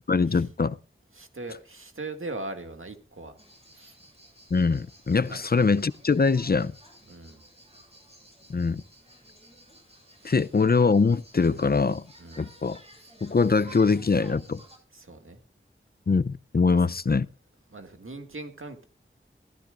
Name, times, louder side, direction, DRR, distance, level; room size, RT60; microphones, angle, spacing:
voice 1, 0.1-0.8 4.5-6.7 8.5-8.8 10.2-12.0 12.4-12.8 13.2-14.6 16.1-17.3, left 4 dB, 45° left, 0.5 m, -23 dB
voice 2, 1.1-3.4 3.7-4.0 5.3-5.4 7.1-7.4 10.2-10.3 12.2-12.5 14.9-15.4 16.7-16.8 17.7-18.8, right 2 dB, 80° right, 2.0 m, -40 dB
sound 1, 3.4-14.8, right 1 dB, 30° right, 7.6 m, -54 dB
16.5 x 15.0 x 2.5 m
wide cardioid pair, 50°, 21 cm